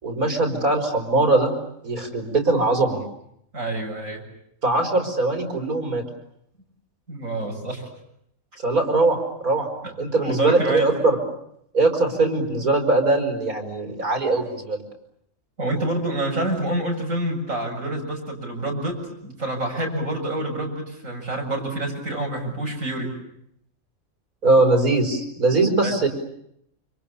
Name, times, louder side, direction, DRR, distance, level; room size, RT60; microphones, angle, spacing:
voice 1, 0.0-1.5 1.8-3.0 4.6-6.0 8.6-9.7 10.0-11.2 11.7-14.8 24.4-26.1, right 2 dB, 85° right, 3 dB, 5.8 m, -21 dB
voice 2, 3.5-4.2 7.1-7.9 9.8-9.9 10.2-10.9 15.6-23.1 25.8-25.9, right 1 dB, 65° right, 0 dB, 8.2 m, -27 dB
29.5 x 27.0 x 7.1 m, 0.74 s
omnidirectional pair, 1.5 m